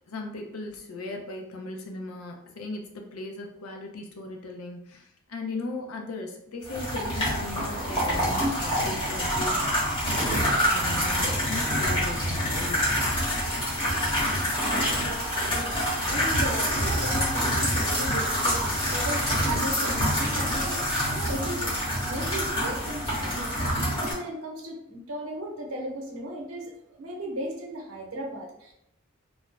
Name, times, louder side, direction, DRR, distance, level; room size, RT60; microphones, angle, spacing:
voice 1, 0.1-5.0 5.3-12.9, left 2 dB, 80° left, 2 dB, 0.5 m, -37 dB
sound 1, 6.7-24.1, equal, 25° left, 0.9 m, -26 dB
voice 2, 14.3-18.6 18.9-20.8 21.1-21.7 22.0-26.7 27.0-28.7, right 1 dB, 75° right, -1 dB, 0.7 m, -36 dB
sound 2, 17.3-22.1, right 1 dB, 5° right, 0.6 m, -43 dB
2.4 x 2.0 x 3.2 m, 0.79 s
head